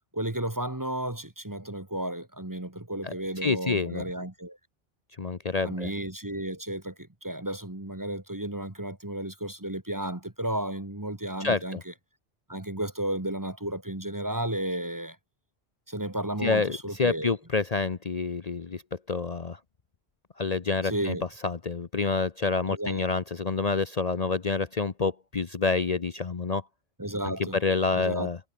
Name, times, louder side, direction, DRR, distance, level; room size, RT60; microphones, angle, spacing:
voice 1, 0.1-4.6 5.6-6.9 7.2-11.9 12.5-15.2 15.9-17.3 20.8-21.2 22.7-23.1 27.0-27.6 28.0-28.3, right 1 dB, 20° right, 1.8 m, -33 dB
voice 2, 3.4-4.0 5.2-5.9 11.4-11.8 16.4-19.6 20.4-21.2 21.4-26.6 27.3-28.4, left 4 dB, 40° left, 1.0 m, -28 dB
omnidirectional pair, 1.1 m